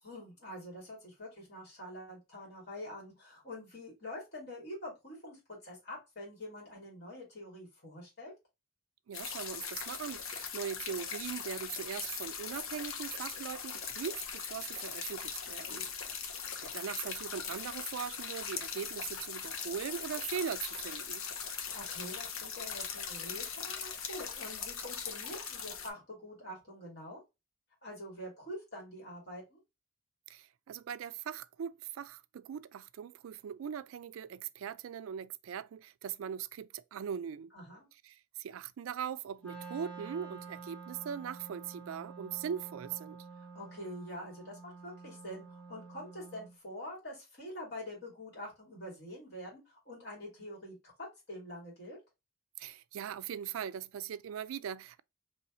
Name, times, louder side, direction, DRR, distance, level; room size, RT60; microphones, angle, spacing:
voice 1, 0.0-8.3 15.7-15.9 21.4-27.2 27.8-29.6 37.5-37.9 43.4-52.0, left 1 dB, 55° left, 2.7 m, -46 dB
sound 1, 9.1-25.9, left 6 dB, 90° left, 0.8 m, -40 dB
voice 2, 9.1-16.3 16.6-21.2 30.3-37.5 38.0-43.2 52.6-55.0, right 8 dB, 90° right, 0.3 m, -40 dB
Wind instrument woodwind instrument, 39.4-46.6, right 4 dB, 5° left, 1.0 m, -49 dB
4.1 x 3.1 x 2.6 m
head